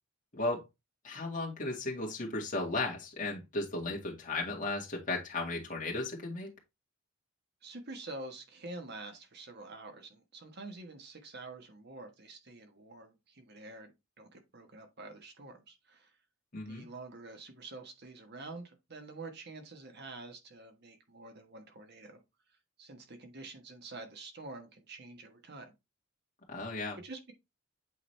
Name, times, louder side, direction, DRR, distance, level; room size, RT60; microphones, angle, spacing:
voice 1, 0.3-0.6 1.0-6.5 16.5-16.8 26.5-27.0, left 2 dB, 40° left, 2.1 m, -35 dB
voice 2, 7.6-16.1 16.6-22.2 22.8-25.7 27.0-27.3, right 2 dB, 50° right, 1.3 m, -47 dB
8.4 x 4.0 x 3.3 m
head